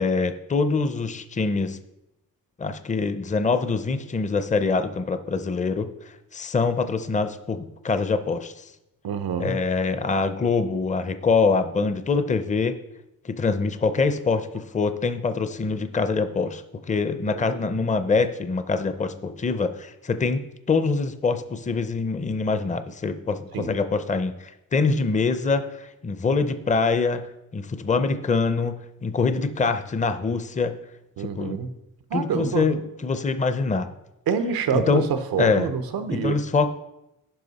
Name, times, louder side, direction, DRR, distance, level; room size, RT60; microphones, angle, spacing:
voice 1, 0.0-1.8 2.6-5.9 6.3-8.5 9.4-12.8 13.2-16.6 16.9-30.8 31.2-31.6 32.1-33.9 34.7-35.0 35.4-35.7 36.1-36.7, left 4 dB, 20° left, 10 dB, 0.5 m, -24 dB
voice 2, 9.0-9.6 17.3-17.6 23.5-23.8 31.2-31.7 32.1-32.7 34.3-36.4, right 6 dB, 90° right, 10 dB, 0.8 m, -26 dB
10.5 x 5.4 x 4.1 m, 0.91 s
cardioid pair, 90°, 35 cm